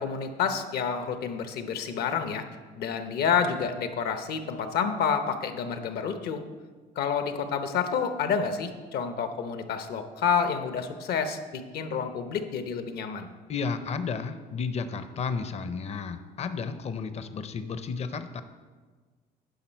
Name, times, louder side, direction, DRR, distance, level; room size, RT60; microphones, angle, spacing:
voice 1, 0.0-2.4 2.7-6.4 7.0-13.3, left 6 dB, 70° left, 8 dB, 0.8 m, -29 dB
voice 2, 13.5-18.4, left 5 dB, 40° left, 11 dB, 0.6 m, -32 dB
10.5 x 5.5 x 4.5 m, 1.4 s
cardioid pair, 110°, 17 cm